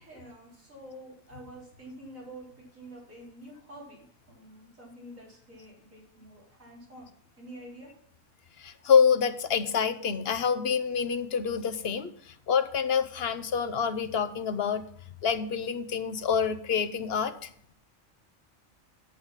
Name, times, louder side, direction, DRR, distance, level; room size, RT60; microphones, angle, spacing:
voice 1, 0.0-7.1 7.4-7.9, right 1 dB, 75° right, -4 dB, 4.6 m, -48 dB
voice 2, 8.6-12.1 12.5-14.8 15.2-17.5, left 6 dB, 55° left, 10 dB, 0.9 m, -26 dB
8.7 x 7.9 x 5.6 m, 0.65 s
omnidirectional pair, 1.4 m